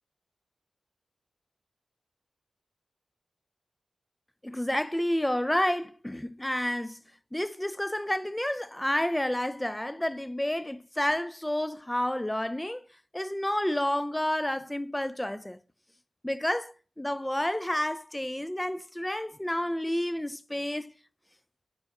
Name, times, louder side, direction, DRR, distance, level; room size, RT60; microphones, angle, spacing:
voice 1, 4.4-7.0 7.3-12.8 13.1-15.6 16.2-20.9, left 1 dB, 10° left, 0.3 m, -30 dB
10.5 x 4.1 x 7.1 m
wide cardioid pair, 160°, 0 cm